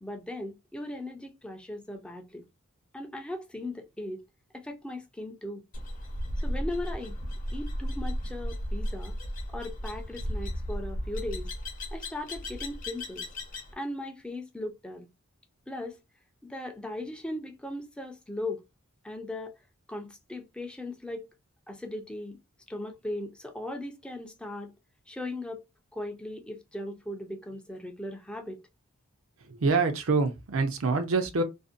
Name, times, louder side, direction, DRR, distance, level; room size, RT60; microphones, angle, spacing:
voice 1, 0.0-2.4 2.9-4.2 4.5-5.6 6.4-7.2 7.5-9.1 9.5-11.5 11.9-13.3 13.7-15.1 15.7-16.0 16.4-18.6 19.0-19.5 19.9-21.3 21.7-22.4 22.7-24.7 25.1-25.6 25.9-28.6, left 1 dB, 5° left, 0.4 m, -38 dB
sound 1, 5.7-13.7, equal, 40° left, 0.7 m, -34 dB
voice 2, 29.4-31.4, right 4 dB, 65° right, 0.6 m, -26 dB
2.5 x 2.1 x 2.5 m
head